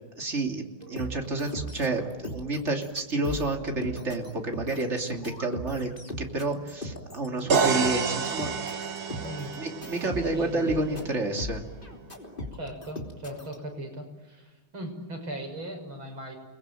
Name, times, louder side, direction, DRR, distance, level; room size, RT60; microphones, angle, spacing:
voice 1, 0.1-5.9 6.2-8.9 9.6-11.6, right 2 dB, 30° right, 3 dB, 3.2 m, -30 dB
sound 1, 0.8-13.6, left 1 dB, 25° left, 3.2 m, -39 dB
sound 2, 4.9-5.6, equal, 55° left, 6.3 m, -48 dB
sound 3, 7.5-11.3, right 6 dB, 50° right, 1.9 m, -29 dB
voice 2, 9.0-9.6 10.0-11.3 12.5-16.4, right 1 dB, 70° right, 3 dB, 7.1 m, -39 dB
30.0 x 21.0 x 9.2 m, 1.1 s
omnidirectional pair, 2.3 m